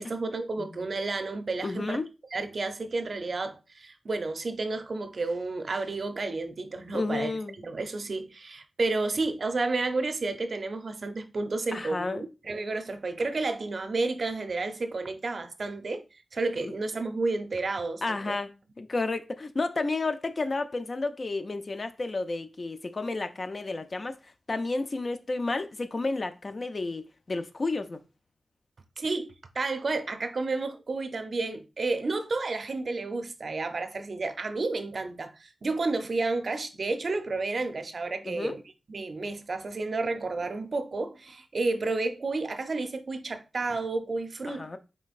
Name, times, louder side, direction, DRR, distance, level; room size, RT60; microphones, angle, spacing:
voice 1, 0.0-2.0 2.3-7.3 7.6-16.0 16.3-18.3 29.0-38.6 38.9-44.8, right 3 dB, 60° right, 0.6 m, -31 dB
voice 2, 1.6-2.1 6.9-7.6 11.7-12.2 16.6-16.7 18.0-28.0 38.2-38.6 44.5-44.8, left 3 dB, 50° left, 0.5 m, -31 dB
5.1 x 3.3 x 2.4 m
cardioid pair, 60°, 0 cm